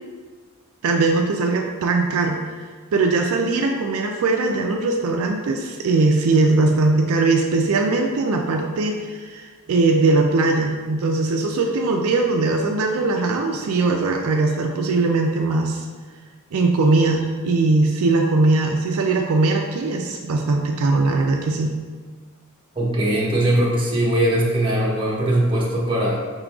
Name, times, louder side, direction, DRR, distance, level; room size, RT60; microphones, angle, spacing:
voice 1, 0.8-2.4 2.9-15.9 16.5-21.7, right 3 dB, 70° right, 2 dB, 0.4 m, -20 dB
voice 2, 22.7-26.2, right 1 dB, 25° right, -4 dB, 1.0 m, -20 dB
5.5 x 3.7 x 2.3 m, 1.5 s
head